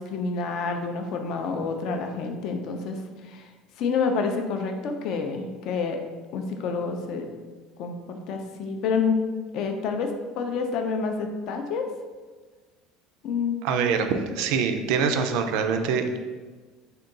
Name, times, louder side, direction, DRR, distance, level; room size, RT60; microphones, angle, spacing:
voice 1, 0.0-3.5 3.8-6.0 6.3-7.3 7.8-9.2 9.5-11.9 13.2-13.6, left 5 dB, 45° left, 5 dB, 0.4 m, -28 dB
voice 2, 13.6-16.2, right 6 dB, 65° right, 7 dB, 0.3 m, -24 dB
3.7 x 2.2 x 3.7 m, 1.4 s
cardioid pair, 175°, 0 cm